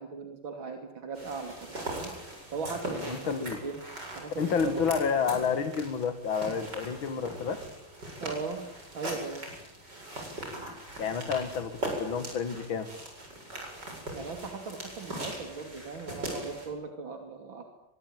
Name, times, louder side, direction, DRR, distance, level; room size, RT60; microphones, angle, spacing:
voice 1, 0.0-2.1 2.5-3.8 4.2-4.9 8.2-8.6 8.9-9.4 14.1-17.6, right 4 dB, 80° right, 4 dB, 3.6 m, -38 dB
sound 1, 1.2-16.7, right 1 dB, 60° right, 8.5 m, -40 dB
voice 2, 3.1-3.6 4.4-7.6 11.0-12.9, left 6 dB, 85° left, 9 dB, 2.5 m, -30 dB
25.0 x 24.0 x 9.1 m, 0.80 s
omnidirectional pair, 2.1 m